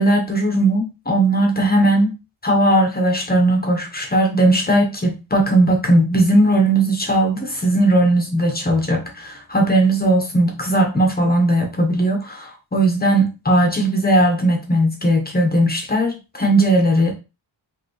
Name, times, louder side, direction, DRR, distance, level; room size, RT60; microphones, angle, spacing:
voice 1, 0.0-2.1 2.4-17.1, right 1 dB, 20° left, 2 dB, 1.0 m, -18 dB
5.2 x 3.0 x 3.0 m, 0.28 s
wide cardioid pair, 180°, 48 cm